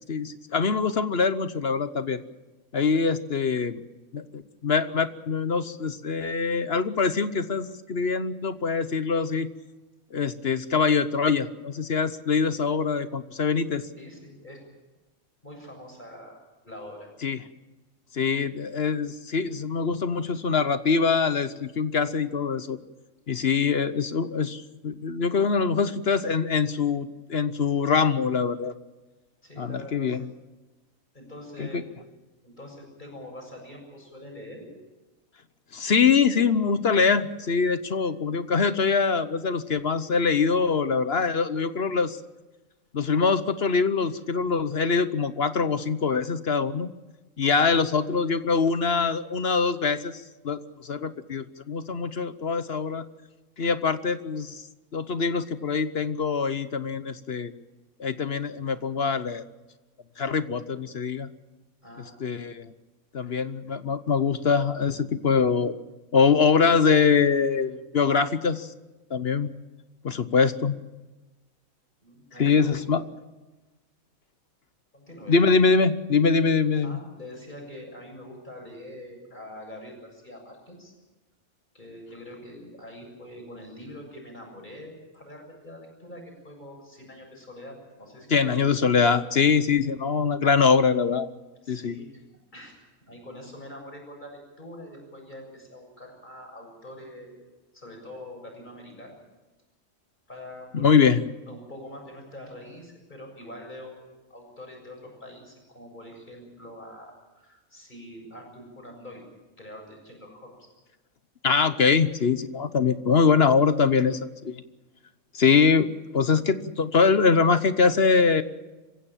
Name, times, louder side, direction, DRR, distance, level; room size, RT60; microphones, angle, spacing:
voice 1, 0.0-2.2 2.7-3.8 4.1-9.5 10.1-13.9 17.2-17.4 18.1-22.8 23.3-28.7 29.6-30.2 31.6-31.8 35.7-42.2 42.9-46.9 47.4-53.0 53.6-54.6 54.9-57.5 58.0-59.4 60.2-61.3 62.2-62.7 63.1-65.8 66.1-68.7 69.1-69.5 70.0-70.8 72.4-73.0 75.3-77.0 88.3-91.3 91.7-91.9 100.7-101.2 111.4-114.6 115.3-118.4, left 5 dB, 50° left, 12 dB, 1.1 m, -23 dB
voice 2, 14.0-14.6 15.4-16.4 16.6-17.1 29.4-30.2 31.1-31.8 32.4-34.7 61.8-62.2 72.0-72.8 74.9-75.4 76.8-80.9 81.7-88.6 91.6-92.1 92.5-92.8 93.1-97.5 97.7-99.2 100.3-101.1 101.5-109.2 109.6-110.7, left 1 dB, 35° left, 2 dB, 7.3 m, -44 dB
26.5 x 16.0 x 7.4 m, 1.1 s
omnidirectional pair, 1.4 m